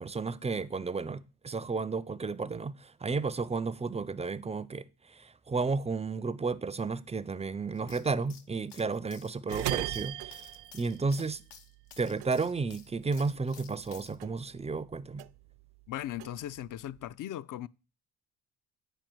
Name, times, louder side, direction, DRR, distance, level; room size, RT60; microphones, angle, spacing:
voice 1, 0.0-11.4 12.0-15.2, right 4 dB, 15° right, 0.4 m, -33 dB
sound 1, 7.7-14.1, left 8 dB, 85° left, 0.9 m, -53 dB
sound 2, 9.5-11.9 12.2-13.9 14.2-15.6 16.0-17.1, right 15 dB, 70° right, 0.5 m, -38 dB
voice 2, 15.9-17.7, left 12 dB, 50° left, 0.4 m, -38 dB
9.0 x 4.8 x 4.6 m
supercardioid pair, 65°, 42 cm